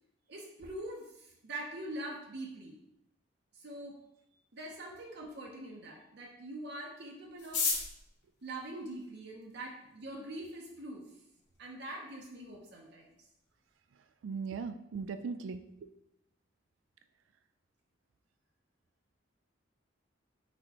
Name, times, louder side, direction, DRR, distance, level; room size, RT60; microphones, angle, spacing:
voice 1, 0.3-2.8 3.5-4.0 4.5-7.7 8.4-11.1 11.6-13.1, right 1 dB, 60° right, -1 dB, 0.7 m, -43 dB
sound 1, 7.4-9.6 10.4-10.5 10.7-10.8 11.1-11.6 11.9-12.0 12.2-12.6 12.9-13.1 13.5-13.8, left 4 dB, 65° left, 1.0 m, -35 dB
voice 2, 14.2-15.6, right 5 dB, 90° right, 9 dB, 0.3 m, -38 dB
4.4 x 4.1 x 2.9 m, 0.80 s
head